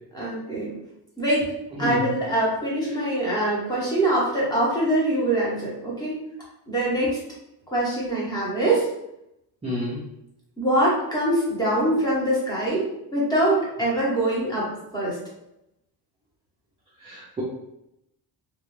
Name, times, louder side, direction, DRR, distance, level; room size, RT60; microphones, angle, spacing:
voice 1, 0.1-0.7 1.2-1.5 1.8-6.1 6.7-7.2 7.7-8.9 10.6-15.2, right 1 dB, 10° left, -6 dB, 0.8 m, -23 dB
voice 2, 9.6-10.0 17.1-17.4, left 1 dB, 15° right, -6 dB, 0.3 m, -29 dB
2.4 x 2.2 x 3.1 m, 0.83 s
cardioid pair, 175°, 39 cm